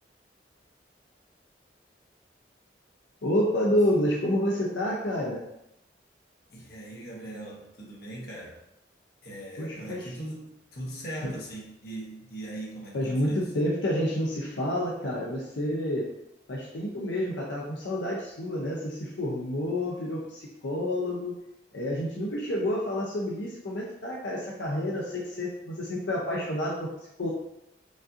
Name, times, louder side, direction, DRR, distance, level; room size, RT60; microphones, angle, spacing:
voice 1, 3.2-5.4 9.6-10.1 11.2-11.3 12.9-16.1 16.5-21.4 21.7-26.9 27.2-27.3, left 1 dB, 80° left, -4 dB, 0.6 m, -29 dB
voice 2, 6.5-8.6 9.2-13.5, right 1 dB, 55° left, -3 dB, 1.0 m, -40 dB
5.1 x 2.5 x 2.6 m, 0.82 s
head